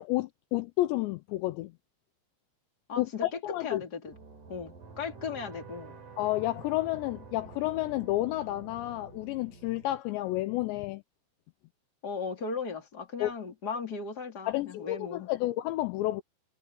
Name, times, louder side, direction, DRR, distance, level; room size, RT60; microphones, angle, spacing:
voice 1, 0.0-1.7 3.0-3.8 6.2-11.0 13.2-13.3 14.5-16.2, left 17 dB, 80° left, 2.8 m, -30 dB
voice 2, 2.9-3.3 3.6-4.1 4.5-6.0 12.0-15.3, left 5 dB, 25° left, 3.0 m, -37 dB
sound 1, 4.1-10.0, right 4 dB, 45° right, 5.2 m, -49 dB
omnidirectional pair, 5.5 m